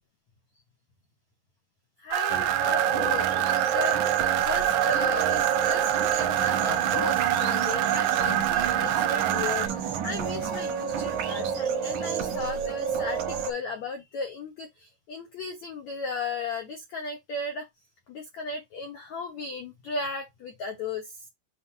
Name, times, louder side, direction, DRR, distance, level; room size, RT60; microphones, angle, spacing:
voice 1, 2.0-17.7 18.1-21.2, left 3 dB, 85° left, 1.5 m, -35 dB
sound 1, 2.1-9.7, right 12 dB, 85° right, 2.2 m, -25 dB
sound 2, 2.3-13.5, right 7 dB, 70° right, 1.9 m, -30 dB
7.9 x 2.6 x 5.7 m
omnidirectional pair, 5.2 m